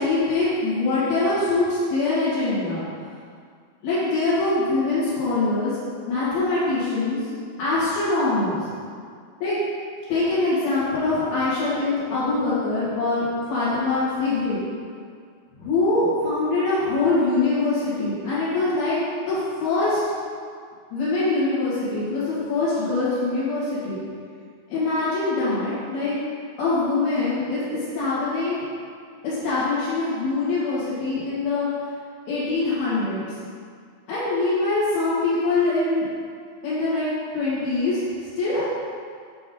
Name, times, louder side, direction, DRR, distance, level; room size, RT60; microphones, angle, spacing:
voice 1, 0.0-2.8 3.8-5.8 6.1-7.3 7.6-8.6 9.4-9.6 10.1-14.6 15.6-19.0 19.3-20.0 20.9-24.0 24.7-26.1 26.6-28.6 29.2-31.7 32.3-33.4 34.1-36.1 36.6-37.1 37.3-38.7, left 3 dB, 65° left, -13 dB, 4.0 m, -23 dB
8.7 x 7.1 x 3.8 m, 2.1 s
omnidirectional pair, 4.8 m